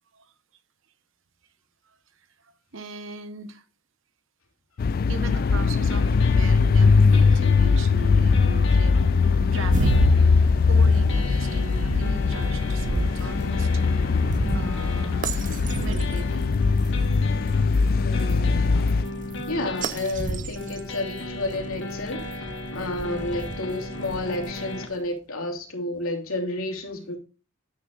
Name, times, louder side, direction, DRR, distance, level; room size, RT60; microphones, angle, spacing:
voice 1, 1.9-3.6 5.1-9.1 9.4-13.8 14.5-15.4 15.8-16.4 23.0-23.4, right 3 dB, 65° right, 1.0 m, -39 dB
sound 1, 4.8-19.1, left 4 dB, 45° left, 0.3 m, -21 dB
sound 2, 5.3-24.9, left 2 dB, 60° left, 1.5 m, -36 dB
sound 3, 9.6-24.8, right 2 dB, 40° right, 0.6 m, -32 dB
voice 2, 17.9-18.7 19.5-22.5 22.7-27.2, left 2 dB, 90° left, 2.8 m, -31 dB
9.8 x 9.3 x 2.5 m
head